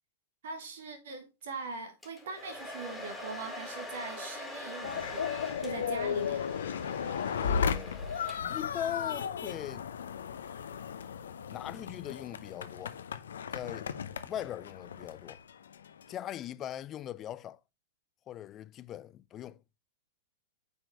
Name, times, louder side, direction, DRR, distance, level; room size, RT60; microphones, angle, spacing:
voice 1, 0.4-6.5, right 4 dB, 60° right, 1.3 m, -42 dB
Domestic sounds home sounds, 2.0-8.7, left 2 dB, 5° left, 2.2 m, -44 dB
sound 1, 4.8-16.1, left 7 dB, 65° left, 0.7 m, -35 dB
voice 2, 7.3-9.9 11.5-13.0 13.5-13.9 14.2-15.4 16.1-17.6 18.3-19.6, left 11 dB, 30° left, 0.4 m, -40 dB
8.8 x 4.5 x 3.3 m
figure-of-eight pair, 100°, 0 cm